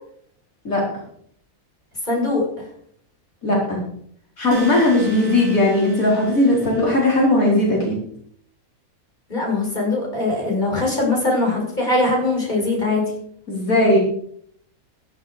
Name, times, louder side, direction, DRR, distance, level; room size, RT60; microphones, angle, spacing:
voice 1, 2.1-2.7 9.3-13.0, left 2 dB, 30° left, -3 dB, 7.0 m, -21 dB
voice 2, 3.4-3.8 4.4-8.0 13.5-14.0, left 1 dB, 75° left, -3 dB, 4.7 m, -18 dB
sound 1, 4.5-7.4, right 2 dB, 45° right, 4.6 m, -39 dB
20.0 x 10.5 x 5.0 m, 0.65 s
omnidirectional pair, 1.5 m